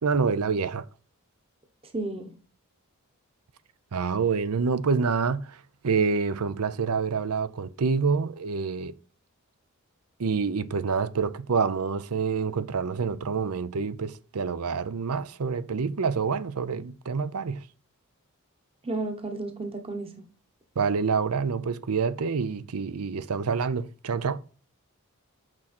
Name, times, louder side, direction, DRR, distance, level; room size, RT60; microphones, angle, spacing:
voice 1, 0.0-0.8 3.9-5.6 5.8-8.9 10.2-17.6 20.8-24.4, right 5 dB, 80° right, 0.6 m, -27 dB
voice 2, 1.8-2.3 18.8-20.2, right 2 dB, 25° right, 1.0 m, -33 dB
6.2 x 6.1 x 4.3 m
head